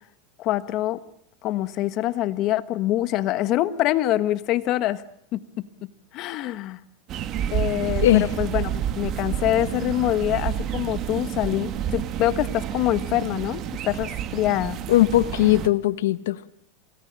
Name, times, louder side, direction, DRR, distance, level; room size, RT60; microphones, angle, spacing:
voice 1, 0.4-1.0 1.4-5.0 5.3-5.7 6.1-6.8 7.5-14.8, left 14 dB, 50° left, 13 dB, 1.3 m, -25 dB
sound 1, 7.1-15.7, right 10 dB, 40° right, 1.8 m, -29 dB
voice 2, 14.9-16.5, left 15 dB, 85° left, 12 dB, 1.1 m, -19 dB
28.5 x 19.0 x 8.9 m, 0.70 s
supercardioid pair, 130°, 0 cm